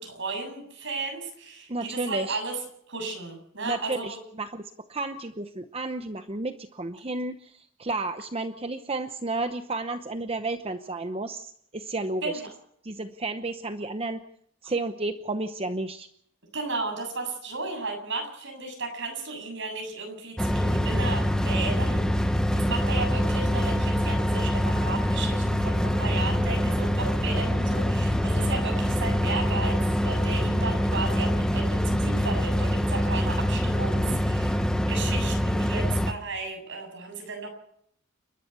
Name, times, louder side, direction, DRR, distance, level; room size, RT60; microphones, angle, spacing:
voice 1, 0.0-2.6 2.9-4.2 12.2-12.5 14.6-14.7 16.5-34.6 34.9-37.6, right 3 dB, 60° right, 3 dB, 7.7 m, -34 dB
voice 2, 1.7-2.4 3.6-12.4 12.8-14.2 14.6-16.1 34.1-34.2, right 2 dB, 25° right, 8 dB, 0.8 m, -32 dB
sound 1, 20.4-36.1, equal, 5° left, 1.2 m, -25 dB
30.0 x 12.5 x 6.9 m, 0.67 s
head